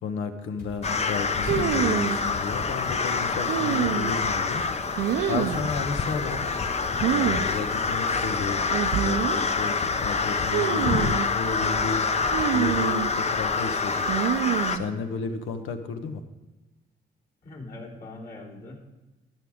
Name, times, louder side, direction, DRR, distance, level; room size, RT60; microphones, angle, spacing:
voice 1, 0.0-4.6 5.3-6.5 7.1-8.6 9.0-12.1 12.5-14.1 14.7-16.2, left 5 dB, 85° left, 7 dB, 1.1 m, -32 dB
sound 1, 0.6-8.4, left 1 dB, 70° left, 4.7 m, -43 dB
sound 2, 0.8-14.8, left 4 dB, 35° left, 0.8 m, -26 dB
sound 3, 1.5-2.2 3.5-4.3 5.0-5.7 7.0-7.4 7.7-7.8 8.7-9.4 10.5-11.3 12.3-13.1 14.1-14.8, right 10 dB, 85° right, 0.6 m, -26 dB
voice 2, 17.4-18.7, left 2 dB, 50° left, -5 dB, 3.7 m, -41 dB
13.5 x 9.9 x 3.6 m, 1.1 s
cardioid pair, 90°, 20 cm